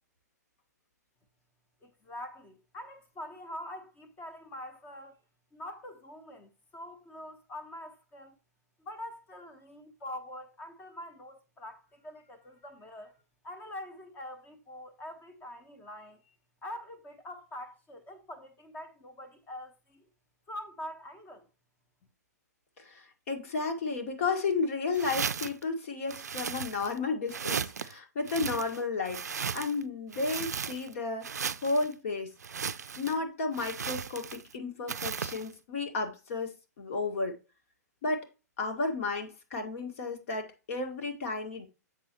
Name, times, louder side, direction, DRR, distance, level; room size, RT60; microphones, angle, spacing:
voice 1, 1.8-5.2 5.5-8.3 8.8-13.1 13.4-16.2 16.6-20.0 20.5-21.5, left 1 dB, 20° left, 1.2 m, -44 dB
voice 2, 22.8-31.3 31.6-32.3 32.6-32.7 33.0-37.4 38.0-38.3 38.6-41.7, left 3 dB, 50° left, 1.8 m, -33 dB
sound 1, 24.9-25.6 26.1-27.0 27.3-27.9 28.3-29.8 30.1-30.9 31.2-31.9 32.4-33.2 33.5-34.5 34.9-35.5, right 7 dB, 70° right, 0.4 m, -36 dB
7.6 x 6.2 x 3.0 m
figure-of-eight pair, 110°, 9 cm